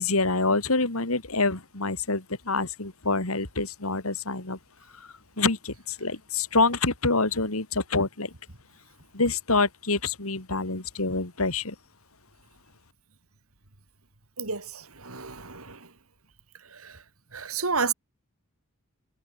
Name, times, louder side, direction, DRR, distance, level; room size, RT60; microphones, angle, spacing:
voice 1, 0.0-4.6 5.4-8.3 9.1-11.7, left 3 dB, 70° left, 3.1 m, -26 dB
voice 2, 14.4-15.9 16.7-17.0 17.3-17.9, right 5 dB, 70° right, 4.0 m, -31 dB
head